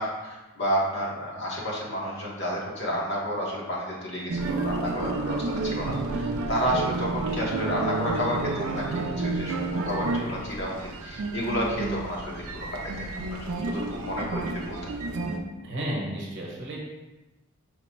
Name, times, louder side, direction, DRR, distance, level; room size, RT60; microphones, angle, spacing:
voice 1, 0.0-13.1 13.7-14.9, equal, 50° left, -3 dB, 0.9 m, -31 dB
sound 1, 4.3-15.4, right 3 dB, 75° right, 0.4 m, -30 dB
voice 2, 15.6-16.8, right 1 dB, 55° right, -2 dB, 0.9 m, -32 dB
4.7 x 2.1 x 4.4 m, 1.1 s
head